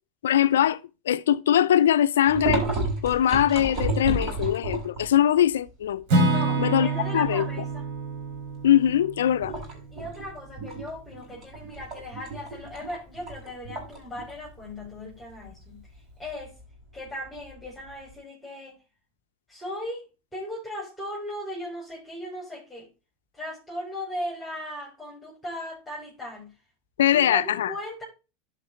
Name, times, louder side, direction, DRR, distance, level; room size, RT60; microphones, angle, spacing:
voice 1, 0.2-0.8 1.1-2.6 3.0-6.0 6.6-6.9 7.1-7.5 8.6-9.5 27.0-27.7, left 11 dB, 85° left, 0.5 m, -21 dB
sound 1, 2.3-5.2 5.7-5.8 6.1-7.3 7.7-8.0 8.3-8.9 9.3-18.1, right 2 dB, 35° right, 4.8 m, -32 dB
Acoustic guitar / Strum, 6.1-10.1, right 2 dB, 60° right, 3.2 m, -27 dB
voice 2, 6.2-7.8 9.4-9.6 9.9-15.9 16.2-16.5 16.9-18.8 19.5-20.0 20.3-22.9 23.3-26.6 27.1-28.0, left 1 dB, 10° left, 5.4 m, -37 dB
12.0 x 5.3 x 3.6 m
hypercardioid pair, 105°, 0 cm